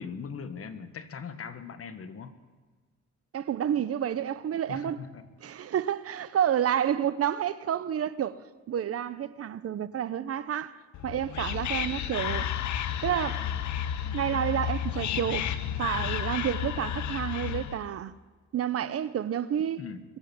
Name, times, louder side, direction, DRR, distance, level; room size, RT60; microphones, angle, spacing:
voice 1, 0.0-2.4 4.7-5.3 19.8-20.0, left 6 dB, 50° left, 1.3 m, -40 dB
voice 2, 3.3-5.0 5.4-8.4 8.7-12.5 13.0-13.5 14.1-15.5 15.8-18.1 18.5-19.8, right 9 dB, 50° right, 0.7 m, -29 dB
Whispering, 10.9-17.9, left 9 dB, 70° left, 0.9 m, -32 dB
22.5 x 8.2 x 6.9 m
cardioid pair, 90°, 30 cm